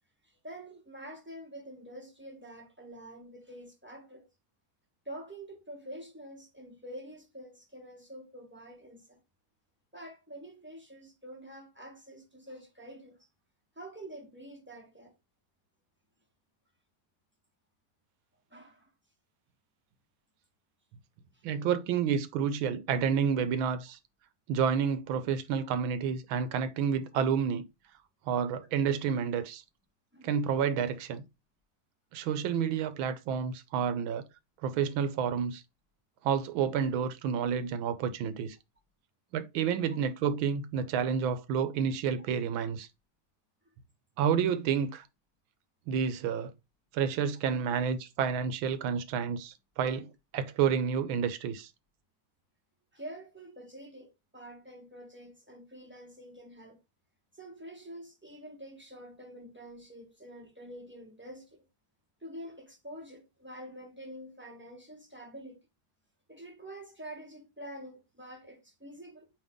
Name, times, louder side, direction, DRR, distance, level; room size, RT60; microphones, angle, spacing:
voice 1, 0.2-4.3 5.0-9.2 9.9-13.3 13.7-15.1 18.5-18.9 21.3-21.5 26.4-26.5 30.1-30.4 43.6-43.7 46.2-46.3 52.9-56.8 57.3-61.7 62.2-65.6 66.3-69.3, right 1 dB, 10° right, 0.5 m, -47 dB
voice 2, 21.4-24.0 24.5-27.7 28.3-29.6 30.2-31.2 32.1-34.2 34.6-35.6 36.2-38.6 39.3-42.9 44.2-45.0 45.9-46.5 46.9-51.7, right 7 dB, 70° right, 1.4 m, -29 dB
8.8 x 2.9 x 3.6 m
omnidirectional pair, 2.4 m